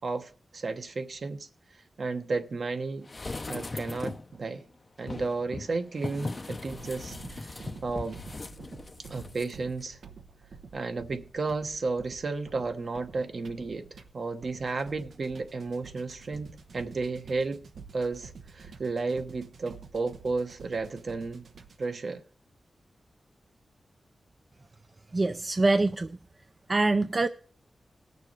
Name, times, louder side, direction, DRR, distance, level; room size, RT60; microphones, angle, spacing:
voice 1, 0.0-1.5 2.0-3.1 3.5-4.7 5.0-7.5 7.8-8.2 9.0-10.0 10.7-13.9 14.1-17.6 17.9-21.5 21.8-22.2, right 3 dB, 60° right, 1.0 m, -33 dB
sound 1, 3.1-4.3 5.0-9.5 9.8-9.9, left 2 dB, 35° left, 0.6 m, -39 dB
sound 2, 6.7-22.0, right 5 dB, 90° right, 0.9 m, -49 dB
voice 2, 25.1-26.2 26.7-27.3, right 2 dB, 35° right, 0.4 m, -24 dB
19.5 x 6.7 x 3.2 m
wide cardioid pair, 105°, 0 cm